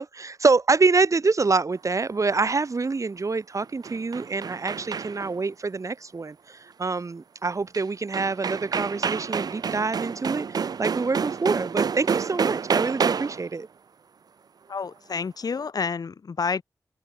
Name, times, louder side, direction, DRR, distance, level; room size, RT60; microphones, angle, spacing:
voice 1, 0.0-13.7, right 4 dB, 55° right, 4.9 m, -26 dB
sound 1, 3.6-5.4 7.7-7.8 8.1-13.5, right 6 dB, 80° right, 1.1 m, -28 dB
voice 2, 14.7-16.6, left 5 dB, 75° left, 4.1 m, -29 dB
open air
cardioid pair, 60°, 7 cm